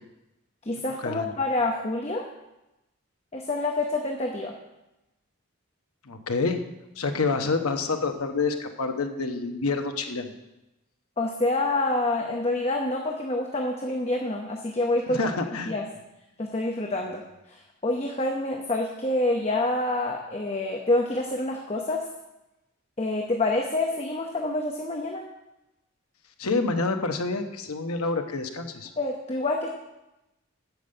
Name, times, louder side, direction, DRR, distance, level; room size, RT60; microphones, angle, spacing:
voice 1, 0.7-2.3 3.3-4.5 11.2-15.2 15.7-15.9 16.4-17.2 17.5-22.0 23.0-25.2 29.0-29.7, left 2 dB, 30° left, 1 dB, 0.8 m, -27 dB
voice 2, 6.1-6.6 7.0-10.3 15.1-15.7 26.4-28.9, left 3 dB, 80° left, 5 dB, 1.1 m, -27 dB
9.2 x 6.9 x 7.8 m, 0.96 s
head